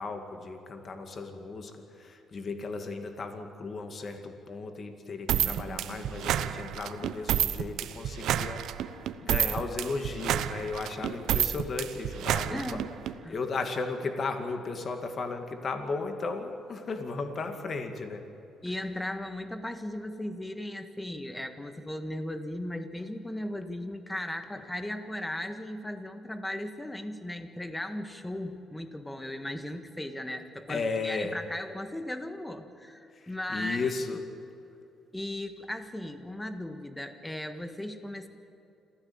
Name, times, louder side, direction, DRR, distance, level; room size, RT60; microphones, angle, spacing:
voice 1, 0.0-12.8 13.3-18.3 30.7-31.3 33.1-34.2, left 4 dB, 40° left, 6 dB, 2.3 m, -35 dB
sound 1, 5.3-13.1, right 11 dB, 80° right, 0.9 m, -29 dB
voice 2, 12.5-12.9 13.2-13.4 18.6-33.9 35.1-38.3, left 1 dB, 10° left, 8 dB, 1.6 m, -37 dB
27.0 x 15.5 x 8.8 m, 2.8 s
cardioid pair, 135°, 0 cm